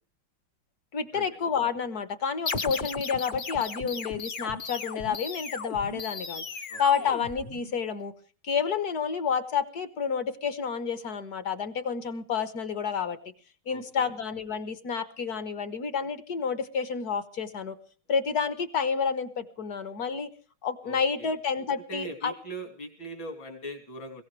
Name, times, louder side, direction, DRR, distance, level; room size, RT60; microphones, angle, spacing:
voice 1, 0.9-6.4 6.8-8.1 8.4-13.2 13.7-17.8 18.1-20.3 20.6-22.3, left 6 dB, 50° left, 12 dB, 1.5 m, -29 dB
sound 1, 2.5-7.9, left 4 dB, 35° left, 0.8 m, -36 dB
voice 2, 6.7-7.1 13.7-14.1 20.8-21.3 21.7-24.2, right 1 dB, 65° left, 7 dB, 3.8 m, -41 dB
21.0 x 17.5 x 3.2 m, 0.41 s
omnidirectional pair, 2.3 m